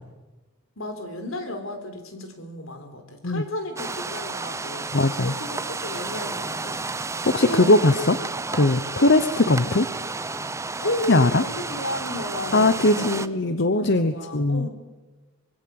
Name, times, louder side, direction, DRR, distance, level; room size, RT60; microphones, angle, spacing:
voice 1, 0.8-4.9 5.2-6.8 7.5-7.8 8.9-9.1 10.8-14.7, left 1 dB, 80° left, 7 dB, 4.1 m, -33 dB
sound 1, 3.8-13.3, right 3 dB, 15° right, 0.7 m, -32 dB
voice 2, 4.9-5.3 7.2-8.2 8.5-9.9 11.1-11.4 12.5-14.7, left 2 dB, 55° left, 11 dB, 1.0 m, -20 dB
25.0 x 21.5 x 7.8 m, 1.2 s
head